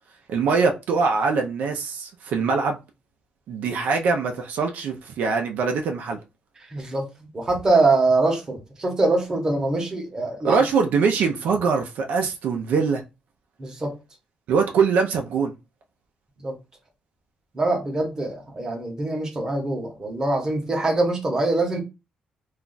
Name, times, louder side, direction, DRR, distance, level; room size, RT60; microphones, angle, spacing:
voice 1, 0.3-2.8 3.5-6.2 10.4-13.0 14.5-15.5, right 5 dB, 80° right, 0.5 m, -23 dB
voice 2, 6.7-7.1 7.3-10.6 13.6-13.9 16.4-16.5 17.5-21.8, right 2 dB, 25° right, 0.9 m, -23 dB
2.4 x 2.2 x 3.8 m
cardioid pair, 150°, 3 cm